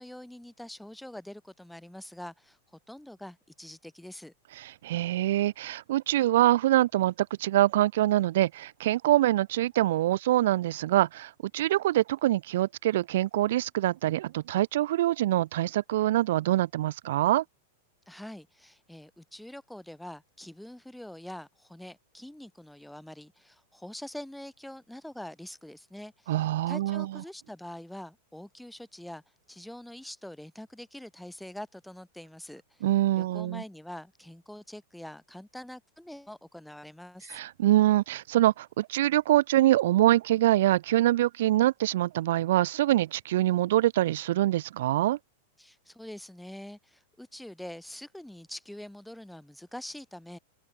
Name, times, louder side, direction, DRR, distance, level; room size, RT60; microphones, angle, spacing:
voice 1, 0.0-2.6 2.9-4.3 18.1-29.2 29.5-32.9 33.1-37.4 45.6-50.4, left 1 dB, ahead, 1.7 m, -44 dB
voice 2, 4.6-17.4 26.3-27.1 32.8-33.6 37.3-45.2, right 14 dB, 65° right, 0.3 m, -24 dB
open air
hypercardioid pair, 100°, 0 cm